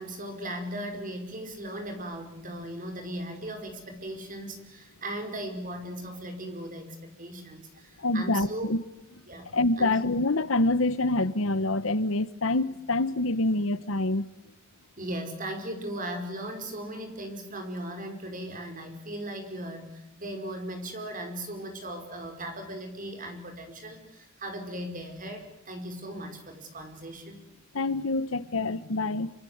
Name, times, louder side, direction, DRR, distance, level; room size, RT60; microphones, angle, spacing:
voice 1, 0.0-8.7 9.3-9.9 15.0-27.5, right 1 dB, 40° right, 5.2 m, -38 dB
voice 2, 8.0-8.8 9.5-14.3 27.7-29.3, left 2 dB, 75° left, 1.1 m, -26 dB
26.5 x 25.5 x 8.0 m
head